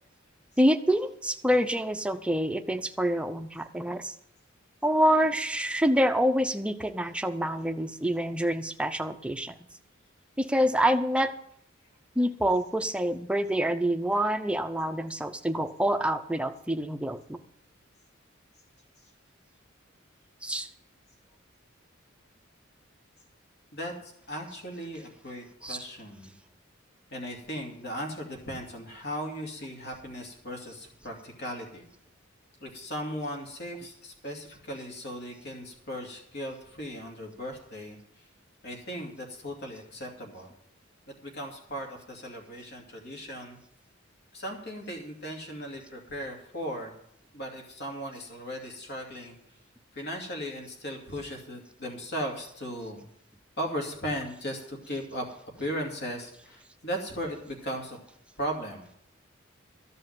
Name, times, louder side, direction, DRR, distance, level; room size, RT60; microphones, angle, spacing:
voice 1, 0.6-4.1 4.8-9.5 10.4-11.3 12.2-17.4 20.4-20.7 25.6-25.8, equal, 5° right, 8 dB, 0.7 m, -26 dB
voice 2, 23.7-26.3 27.1-31.8 32.6-38.0 38.6-40.5 41.2-43.6 44.3-46.9 47.3-49.3 49.9-53.1 53.6-55.3 55.6-58.0 58.4-58.9, equal, 55° left, 1 dB, 2.6 m, -37 dB
14.0 x 5.6 x 9.3 m, 0.72 s
head